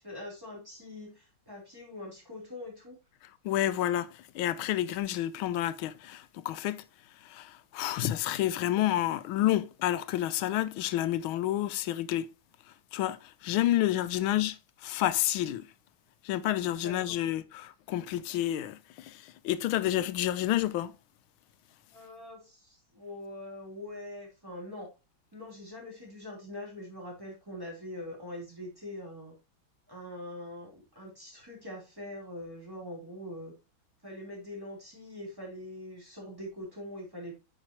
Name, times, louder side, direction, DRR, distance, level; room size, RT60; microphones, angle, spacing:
voice 1, 0.0-3.0 14.1-14.2 16.8-17.2 21.9-24.9 25.3-29.3 29.9-33.5 34.0-37.3, left 1 dB, 10° right, 3.4 m, -43 dB
voice 2, 3.4-6.8 7.2-12.3 12.9-15.7 16.2-20.9, left 13 dB, 80° left, 1.5 m, -29 dB
8.8 x 5.7 x 2.9 m
omnidirectional pair, 2.2 m